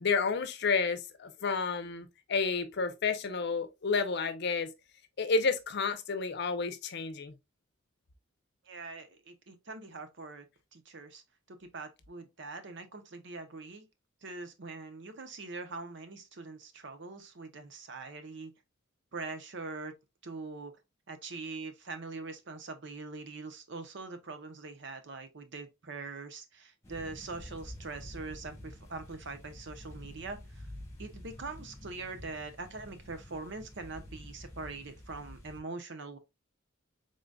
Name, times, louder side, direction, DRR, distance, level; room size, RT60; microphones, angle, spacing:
voice 1, 0.0-4.7 5.2-7.3, left 4 dB, 55° left, 0.6 m, -30 dB
voice 2, 8.6-10.5 10.7-11.2 11.5-13.9 14.2-18.5 19.1-19.9 20.2-20.7 21.1-30.7 31.0-36.2, right 3 dB, 65° right, 0.7 m, -43 dB
sound 1, 26.8-35.6, left 1 dB, 15° left, 1.3 m, -48 dB
3.8 x 3.8 x 2.3 m
head